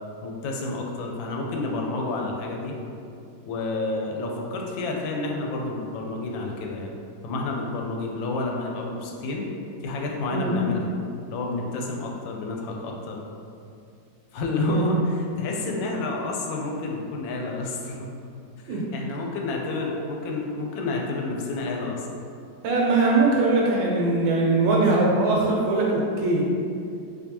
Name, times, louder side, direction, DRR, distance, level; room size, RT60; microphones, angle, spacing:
voice 1, 0.2-2.8 3.5-6.9 7.2-9.5 9.8-11.0 11.3-13.2 14.3-18.1 18.6-22.2, left 2 dB, 85° left, 0 dB, 1.3 m, -30 dB
voice 2, 22.6-26.4, right 2 dB, 80° right, -3 dB, 1.4 m, -21 dB
4.3 x 2.8 x 2.9 m, 2.5 s
omnidirectional pair, 2.1 m